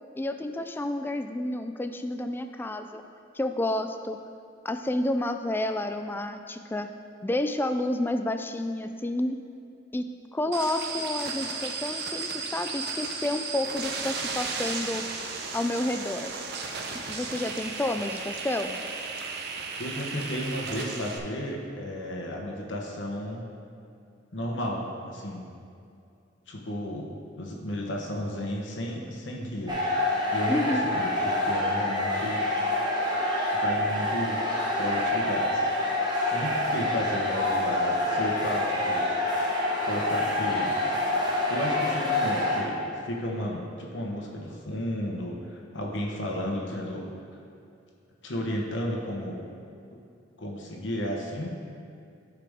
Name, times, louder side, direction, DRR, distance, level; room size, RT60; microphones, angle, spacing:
voice 1, 0.2-3.0 3.3-4.2 4.6-6.9 7.2-9.4 9.9-10.1 10.3-15.0 15.5-16.3 17.1-18.8 30.5-30.9, left 1 dB, 10° left, 7 dB, 0.3 m, -30 dB
sound 1, 10.5-21.2, right 4 dB, 60° right, 0.7 m, -34 dB
voice 2, 19.8-23.5 24.3-25.5 26.5-32.4 33.5-34.4 34.8-35.7 36.3-39.1 39.8-40.7 41.5-47.1 48.2-49.5 50.4-51.5, equal, 70° left, -1 dB, 1.2 m, -33 dB
sound 2, 29.7-42.6, left 1 dB, 25° right, 1.2 m, -27 dB
12.0 x 4.8 x 3.6 m, 2.5 s
head